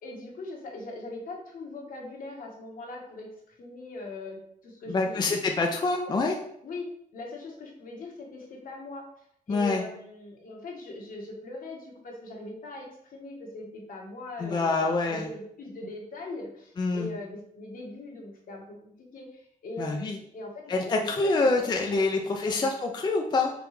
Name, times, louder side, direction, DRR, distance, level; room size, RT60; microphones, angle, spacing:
voice 1, 0.0-5.4 6.1-6.2 6.6-6.9 7.1-9.1 9.5-22.7, left 2 dB, 70° left, -1 dB, 1.1 m, -41 dB
voice 2, 4.9-6.4 9.5-9.8 14.4-15.3 16.8-17.1 19.8-20.2 20.7-23.5, left 3 dB, 30° left, 2 dB, 0.4 m, -26 dB
5.1 x 2.3 x 3.1 m, 0.71 s
cardioid pair, 110°, 15 cm